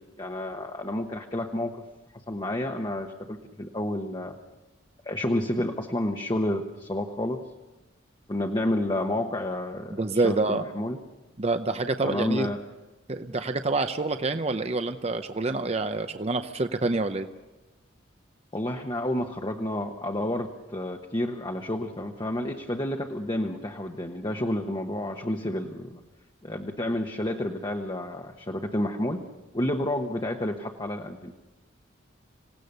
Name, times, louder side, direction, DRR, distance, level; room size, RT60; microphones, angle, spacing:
voice 1, 0.2-1.8 2.3-4.4 5.0-7.4 8.3-10.0 10.2-11.0 12.0-12.6 18.5-26.0 26.4-29.2 29.5-31.3, left 1 dB, 25° left, 2 dB, 1.1 m, -30 dB
voice 2, 10.0-10.6 11.4-12.5 13.1-17.3, right 3 dB, 30° right, 8 dB, 0.7 m, -27 dB
26.5 x 17.5 x 6.7 m, 1.1 s
head